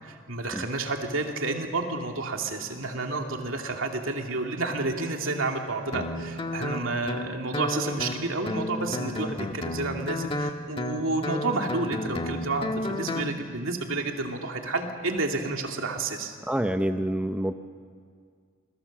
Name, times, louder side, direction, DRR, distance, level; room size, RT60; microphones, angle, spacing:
voice 1, 0.0-16.4, right 2 dB, 70° right, 2 dB, 2.7 m, -30 dB
Guitar, 5.9-13.3, left 1 dB, 25° left, 1.4 m, -32 dB
voice 2, 16.5-17.5, right 1 dB, 5° right, 7 dB, 0.7 m, -27 dB
27.5 x 22.5 x 7.5 m, 2.1 s
head